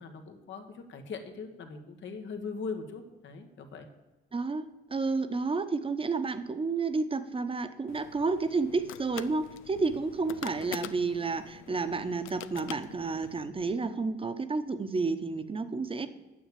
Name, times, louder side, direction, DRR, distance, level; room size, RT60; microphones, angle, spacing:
voice 1, 0.0-3.9, left 4 dB, 70° left, 6 dB, 1.7 m, -40 dB
voice 2, 4.3-4.6 4.9-16.1, right 4 dB, 25° right, 10 dB, 1.0 m, -31 dB
sound 1, 7.9-13.4, left 13 dB, 85° left, 0.5 m, -45 dB
9.5 x 7.1 x 8.3 m, 1.1 s
cardioid pair, 90°, 20 cm